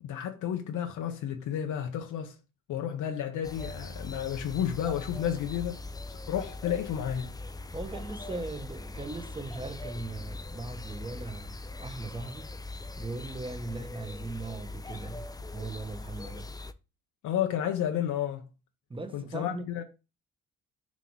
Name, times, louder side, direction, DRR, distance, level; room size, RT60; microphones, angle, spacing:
voice 1, 0.0-2.3 2.7-5.8 6.1-7.4 17.2-18.5 19.1-19.8, left 10 dB, 80° left, 0.9 m, -31 dB
sound 1, 3.4-16.7, left 2 dB, 15° left, 0.4 m, -41 dB
voice 2, 7.7-12.6 13.0-16.5 18.9-19.8, right 2 dB, 15° right, 1.0 m, -39 dB
6.3 x 3.0 x 5.4 m
cardioid pair, 90°, 30 cm